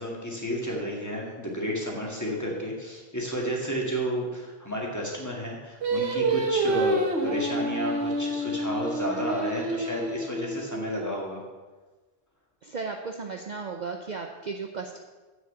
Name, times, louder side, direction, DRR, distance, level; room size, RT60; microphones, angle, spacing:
voice 1, 0.0-11.4, equal, 15° left, -2 dB, 2.1 m, -32 dB
Singing, 5.8-11.1, right 2 dB, 75° right, 1.5 m, -28 dB
voice 2, 12.6-15.0, right 4 dB, 45° right, 3 dB, 0.7 m, -35 dB
7.8 x 6.5 x 8.1 m, 1.3 s
omnidirectional pair, 1.1 m